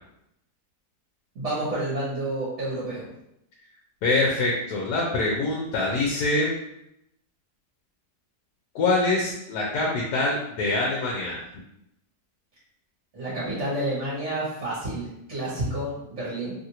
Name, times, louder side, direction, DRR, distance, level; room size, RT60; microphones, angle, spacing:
voice 1, 1.3-3.1 13.1-16.5, right 1 dB, 50° right, -9 dB, 1.3 m, -29 dB
voice 2, 4.0-6.5 8.7-11.4, left 2 dB, 80° left, -2 dB, 1.1 m, -24 dB
3.0 x 2.5 x 2.8 m, 0.81 s
omnidirectional pair, 1.8 m